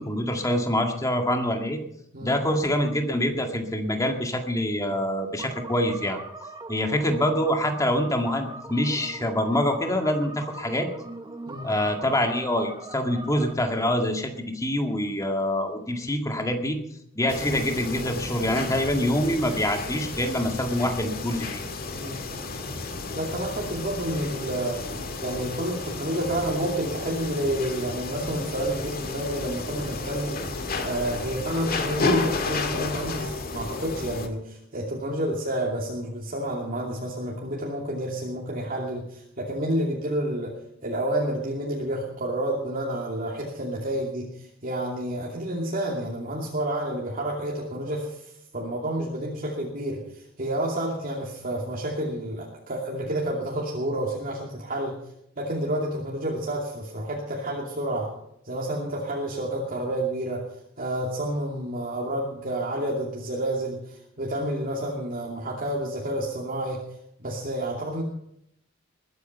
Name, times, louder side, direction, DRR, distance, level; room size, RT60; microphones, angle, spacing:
voice 1, 0.0-1.8 2.2-6.2 6.7-10.9 11.6-16.8 17.2-21.6, left 1 dB, 15° left, 4 dB, 2.0 m, -25 dB
sound 1, 5.4-13.5, right 2 dB, 20° right, 1.1 m, -41 dB
sound 2, 17.3-34.3, left 3 dB, 50° left, 1.8 m, -32 dB
voice 2, 23.2-24.8 25.2-30.4 30.8-40.5 40.8-55.0 55.4-58.1 58.4-60.4 60.8-66.8 67.2-68.0, right 1 dB, 45° right, -3 dB, 2.7 m, -29 dB
21.0 x 9.5 x 5.7 m, 0.76 s
head